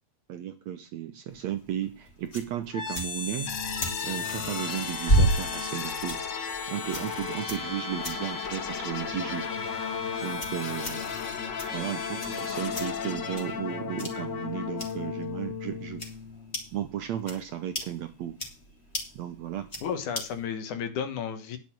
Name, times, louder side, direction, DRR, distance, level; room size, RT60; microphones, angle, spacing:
voice 1, 0.3-3.5 4.0-6.2 6.7-9.5 10.2-11.0 11.7-16.1 16.7-18.4 19.2-19.7, right 10 dB, 70° right, 9 dB, 1.8 m, -34 dB
sound 1, 1.3-20.5, right 1 dB, 20° left, 3.0 m, -35 dB
sound 2, 2.7-16.6, left 6 dB, 45° left, 1.5 m, -34 dB
voice 2, 19.8-21.6, left 7 dB, 65° left, 9 dB, 2.7 m, -32 dB
10.5 x 6.6 x 6.1 m, 0.31 s
omnidirectional pair, 3.9 m